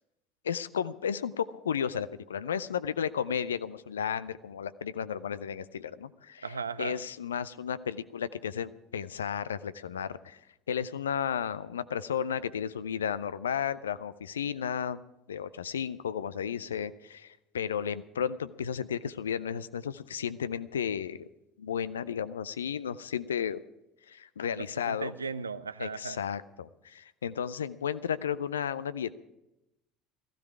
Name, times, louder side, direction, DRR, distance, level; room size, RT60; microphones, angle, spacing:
voice 1, 0.4-6.5 6.8-10.4 10.7-15.0 15.3-21.3 21.6-23.6 24.1-25.1 25.8-29.1, left 8 dB, 75° left, 16 dB, 0.5 m, -33 dB
voice 2, 6.4-7.0 24.4-26.2, right 5 dB, 85° right, 15 dB, 0.4 m, -37 dB
15.5 x 15.0 x 4.7 m, 0.91 s
figure-of-eight pair, 65°, 0 cm